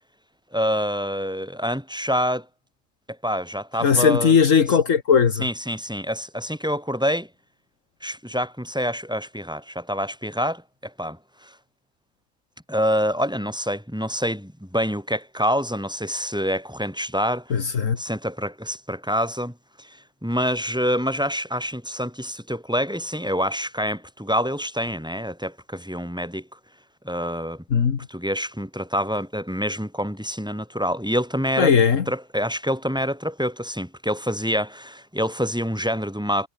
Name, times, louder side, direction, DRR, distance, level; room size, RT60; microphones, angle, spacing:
voice 1, 0.5-2.5 3.2-4.4 4.7-4.8 5.4-7.3 8.0-11.5 12.7-17.7 18.0-26.5 27.0-27.6 28.1-31.7 32.1-36.5, equal, 5° right, 7.8 m, -26 dB
voice 2, 3.8-5.4 17.5-18.0 27.7-28.0 31.6-32.0, left 6 dB, 70° left, 1.7 m, -18 dB
omnidirectional pair, 1.4 m